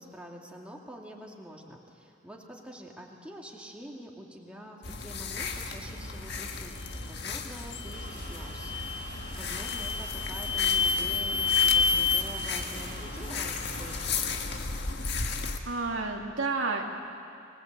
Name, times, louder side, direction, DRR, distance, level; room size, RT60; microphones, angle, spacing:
voice 1, 0.0-14.7, equal, 5° right, -1 dB, 2.3 m, -46 dB
Soundwalk in Suburban California, 4.8-15.6, left 4 dB, 55° left, 1.7 m, -35 dB
sound 1, 7.8-8.1 8.6-9.1 9.6-12.2, left 5 dB, 80° left, 1.3 m, -27 dB
sound 2, 7.9-14.2, right 2 dB, 40° right, 3.0 m, -47 dB
voice 2, 15.4-16.8, right 3 dB, 75° right, 1 dB, 2.4 m, -31 dB
25.5 x 19.0 x 8.1 m, 2.4 s
head